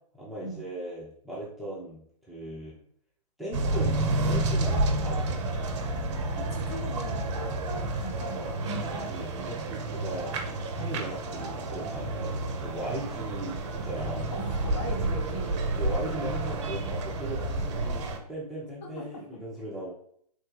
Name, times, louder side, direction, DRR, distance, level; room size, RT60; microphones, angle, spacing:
voice 1, 0.1-2.0 2.3-2.8 3.4-5.6 9.1-10.3 10.7-14.3 15.8-19.9, right 1 dB, ahead, -7 dB, 0.5 m, -38 dB
sound 1, 3.5-18.2, right 2 dB, 45° right, 0.5 m, -30 dB
voice 2, 6.3-7.3 8.0-8.8 12.2-12.5 14.3-15.6 18.8-19.4, equal, 45° left, 2 dB, 0.8 m, -40 dB
3.4 x 2.2 x 3.2 m, 0.66 s
figure-of-eight pair, 125°, 21 cm